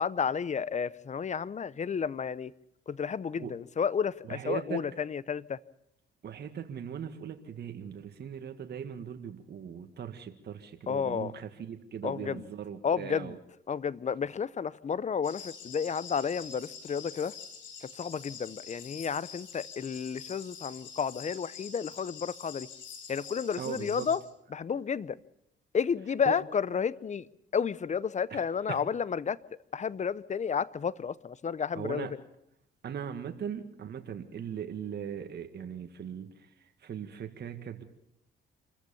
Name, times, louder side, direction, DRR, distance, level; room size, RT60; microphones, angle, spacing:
voice 1, 0.0-2.5 2.9-5.6 10.9-11.3 12.0-12.4 12.8-13.4 13.7-17.3 18.0-22.7 23.1-24.2 24.5-25.2 25.7-27.3 27.5-29.4 29.7-32.1, left 6 dB, 35° left, 0.7 m, -31 dB
voice 2, 4.3-4.8 6.2-13.4 23.6-24.1 26.3-26.4 28.3-28.4 28.7-28.8 31.8-32.1 32.8-36.3 36.8-37.8, right 8 dB, 55° right, 1.9 m, -39 dB
sound 1, 15.2-24.2, left 6 dB, 75° left, 4.5 m, -46 dB
26.5 x 14.5 x 7.1 m
cardioid pair, 90°, 20 cm